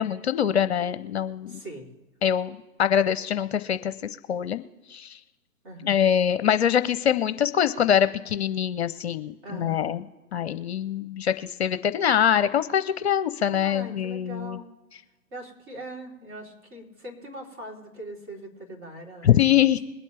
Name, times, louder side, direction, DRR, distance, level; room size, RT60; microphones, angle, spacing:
voice 1, 0.0-1.6 2.2-4.6 4.9-5.2 5.8-10.0 10.3-14.6 19.2-19.8, left 9 dB, 50° left, 13 dB, 0.7 m, -24 dB
voice 2, 1.5-1.9 5.6-6.1 9.4-10.0 13.5-14.7 15.3-19.8, right 1 dB, 35° right, -1 dB, 3.8 m, -41 dB
22.0 x 8.4 x 3.4 m, 1.2 s
figure-of-eight pair, 135°, 43 cm